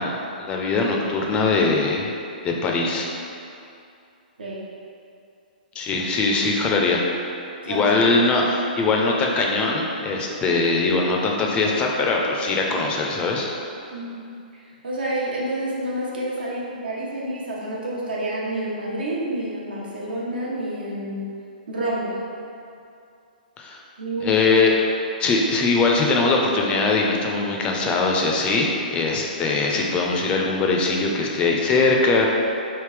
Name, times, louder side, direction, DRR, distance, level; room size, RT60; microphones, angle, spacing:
voice 1, 0.0-2.1 2.4-3.1 5.8-7.1 7.7-13.5 23.6-23.8 24.2-24.8 25.2-32.3, left 3 dB, 20° left, 0 dB, 0.4 m, -21 dB
voice 2, 14.5-21.2 21.7-22.2 24.0-24.3, right 1 dB, 85° right, -5 dB, 0.9 m, -29 dB
3.3 x 2.9 x 3.2 m, 2.5 s
hypercardioid pair, 135°, 5 cm